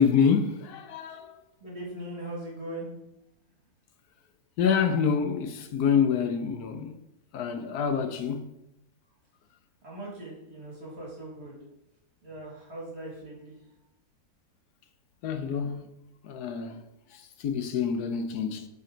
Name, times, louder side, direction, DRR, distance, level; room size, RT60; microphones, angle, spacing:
voice 1, 0.0-1.4 4.6-7.0 7.3-8.5 15.2-15.8 16.2-16.8 17.1-18.7, left 7 dB, 75° left, 1.2 m, -26 dB
voice 2, 1.6-2.9 9.8-11.6 12.2-13.6, right 1 dB, 40° right, 2.4 m, -40 dB
8.6 x 4.1 x 3.8 m
omnidirectional pair, 1.7 m